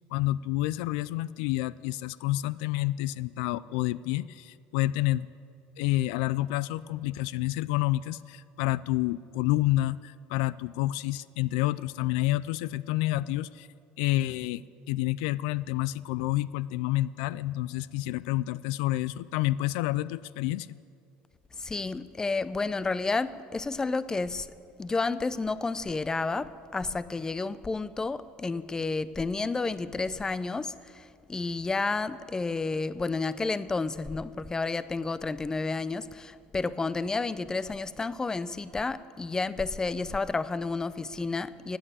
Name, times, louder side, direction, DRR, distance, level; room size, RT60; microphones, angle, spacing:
voice 1, 0.1-5.3 5.8-13.7 14.0-14.6 14.9-20.8, left 17 dB, 80° left, 18 dB, 0.4 m, -29 dB
voice 2, 21.6-24.5 24.8-41.8, left 3 dB, 15° left, 16 dB, 0.5 m, -31 dB
16.5 x 8.8 x 8.2 m, 2.3 s
supercardioid pair, 115°, 4 cm